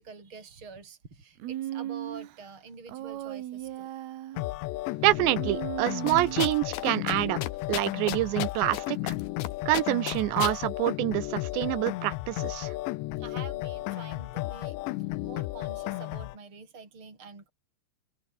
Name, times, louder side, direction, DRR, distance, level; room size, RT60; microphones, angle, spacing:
voice 1, 0.0-3.9 13.2-14.8 15.2-17.5, right 5 dB, 30° right, 6.7 m, -46 dB
Human voice, 1.4-2.4 2.9-4.5 5.3-6.6, right 13 dB, 70° right, 3.3 m, -37 dB
sound 1, 4.4-16.4, left 19 dB, 85° left, 3.0 m, -34 dB
voice 2, 5.0-7.4 7.7-9.1 9.7-12.7, right 17 dB, 85° right, 3.3 m, -27 dB
sound 2, 6.1-6.8 7.1-7.2 7.4-8.8 9.1-9.5 9.7-10.6, left 12 dB, 70° left, 3.3 m, -32 dB
omnidirectional pair, 5.0 m